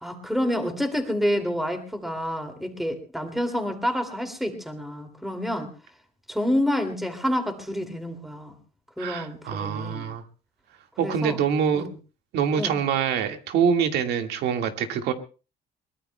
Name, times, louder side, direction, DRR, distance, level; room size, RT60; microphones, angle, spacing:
voice 1, 0.0-5.7 6.3-8.6 9.0-10.1 11.0-11.4 11.7-11.9 12.6-12.8, equal, ahead, 5 dB, 2.5 m, -28 dB
voice 2, 9.0-10.2 11.0-11.9 12.3-15.1, right 7 dB, 80° right, 6 dB, 1.8 m, -25 dB
23.0 x 20.5 x 2.2 m, 0.34 s
cardioid pair, 110°, 17 cm